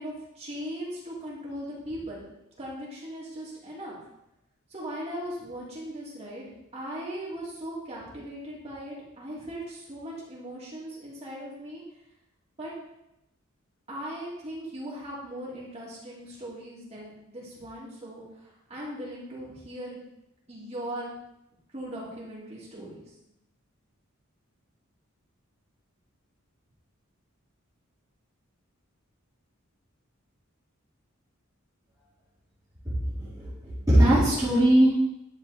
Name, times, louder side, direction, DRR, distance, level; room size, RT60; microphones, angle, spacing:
voice 1, 0.0-2.2 2.6-4.0 4.7-6.4 6.7-11.8 12.6-12.7 13.9-20.0 20.5-21.1 21.7-23.0, equal, 30° right, -7 dB, 3.0 m, -38 dB
voice 2, 32.9-34.9, right 1 dB, 15° right, -11 dB, 2.4 m, -21 dB
10.5 x 4.6 x 4.3 m, 0.86 s
head